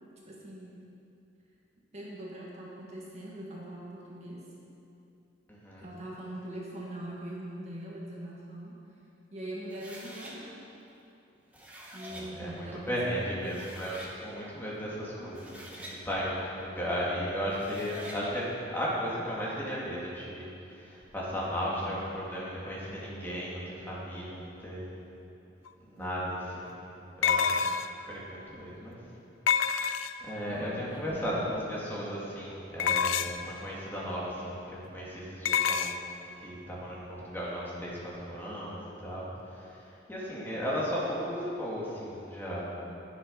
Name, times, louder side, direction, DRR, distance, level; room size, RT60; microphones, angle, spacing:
voice 1, 0.3-0.8 1.9-4.4 5.8-8.8 9.3-10.6 11.9-13.5 15.1-15.7 26.0-26.3 30.4-31.5, right 1 dB, 35° right, -5 dB, 1.7 m, -42 dB
voice 2, 5.5-5.8 12.1-24.9 25.8-27.6 28.1-29.0 30.2-35.9 36.4-39.3 39.6-39.8 40.1-42.6, equal, 10° left, -7 dB, 2.1 m, -35 dB
sound 1, 9.7-10.3 11.3-12.3 13.1-13.2 13.4-14.1 15.2-16.0 17.5-18.2, equal, 10° right, 1.4 m, -46 dB
sound 2, 25.7-25.8 27.2-28.1 29.5-30.4 32.8-33.5 35.5-36.0, left 7 dB, 80° left, 0.4 m, -27 dB
11.0 x 9.8 x 5.3 m, 2.8 s
head